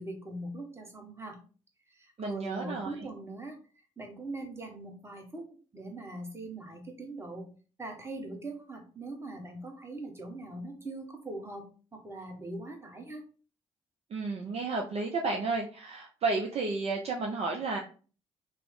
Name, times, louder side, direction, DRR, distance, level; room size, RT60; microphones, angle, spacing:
voice 1, 0.0-1.4 1.9-3.6 4.0-7.5 7.8-11.6 11.9-13.2, right 2 dB, 15° right, 2 dB, 1.1 m, -41 dB
voice 2, 2.2-2.9 14.1-17.8, right 3 dB, 40° right, 1 dB, 0.5 m, -32 dB
3.0 x 2.0 x 3.7 m, 0.38 s
hypercardioid pair, 45°, 15 cm